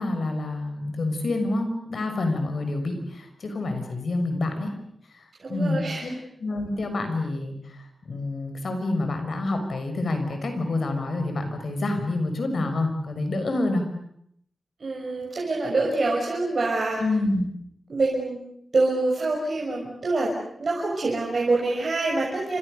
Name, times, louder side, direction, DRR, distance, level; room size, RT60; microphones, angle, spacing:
voice 1, 0.0-4.7 5.5-6.1 6.4-13.9 17.0-17.5, left 2 dB, 65° left, 6 dB, 6.3 m, -27 dB
voice 2, 5.4-6.0 14.8-17.0 17.9-18.4 18.7-20.3 20.6-22.6, right 2 dB, 50° right, -2 dB, 6.2 m, -25 dB
30.0 x 26.5 x 6.8 m, 0.70 s
wide cardioid pair, 135°, 0 cm